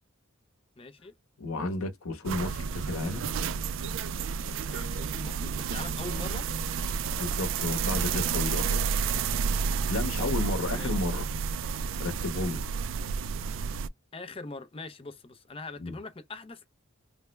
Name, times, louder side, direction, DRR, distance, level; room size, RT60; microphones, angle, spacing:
voice 1, 0.8-1.1 4.7-6.5 10.7-11.0 14.1-16.7, left 3 dB, 25° left, 0.5 m, -42 dB
voice 2, 1.4-3.3 7.2-8.9 9.9-11.3 12.0-12.6 15.8-15.9, left 2 dB, 75° left, 0.9 m, -32 dB
sound 1, 2.2-13.9, right 6 dB, 60° right, 0.3 m, -30 dB
3.3 x 2.1 x 3.1 m
head